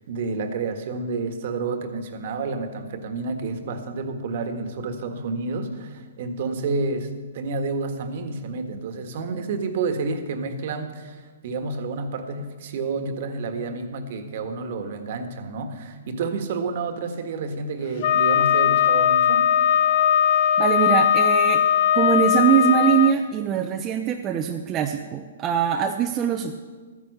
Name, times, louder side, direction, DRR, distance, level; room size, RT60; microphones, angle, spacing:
voice 1, 0.1-19.5, right 3 dB, 55° right, 7 dB, 1.5 m, -30 dB
Wind instrument woodwind instrument, 18.0-23.2, left 9 dB, 45° left, 0.6 m, -19 dB
voice 2, 20.6-21.6 21.9-26.5, right 8 dB, 25° right, 4 dB, 0.6 m, -22 dB
13.0 x 9.8 x 6.6 m, 1.5 s
hypercardioid pair, 145°, 0 cm